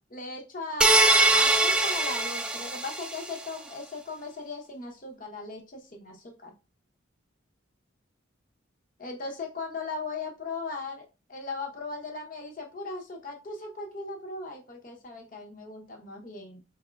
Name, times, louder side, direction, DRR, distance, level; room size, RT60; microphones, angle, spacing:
voice 1, 0.0-6.5 9.0-16.6, left 3 dB, 45° left, 1 dB, 0.8 m, -38 dB
sound 1, 0.8-3.3, right 2 dB, 5° right, 0.3 m, -22 dB
4.7 x 3.4 x 2.3 m, 0.30 s
head